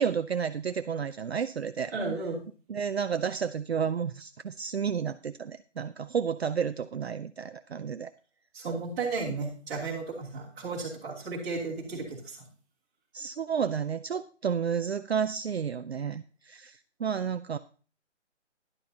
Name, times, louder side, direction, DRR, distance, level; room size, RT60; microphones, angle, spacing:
voice 1, 0.0-1.9 2.7-8.1 13.1-17.6, right 7 dB, 60° right, 10 dB, 0.5 m, -31 dB
voice 2, 1.9-2.4 8.5-12.4, right 3 dB, 15° right, -8 dB, 3.0 m, -34 dB
12.0 x 11.5 x 2.8 m, 0.39 s
hypercardioid pair, 170°, 36 cm